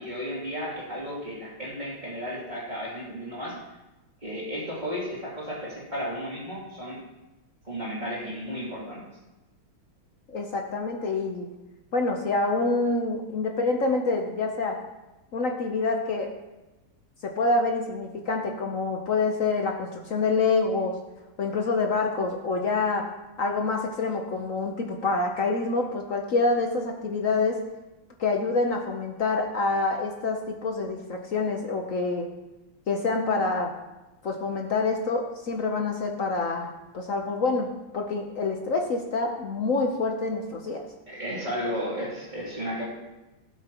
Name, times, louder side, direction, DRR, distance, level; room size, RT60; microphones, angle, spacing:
voice 1, 0.0-3.6 4.2-7.0 7.6-9.1 41.1-42.9, equal, 20° right, -6 dB, 2.9 m, -33 dB
voice 2, 10.3-11.5 11.9-14.8 15.3-16.3 17.2-21.0 21.4-23.1 23.4-27.6 28.2-32.3 32.9-33.7 34.2-40.9, left 3 dB, 55° left, 2 dB, 0.9 m, -26 dB
16.5 x 8.0 x 3.0 m, 1.1 s
omnidirectional pair, 2.2 m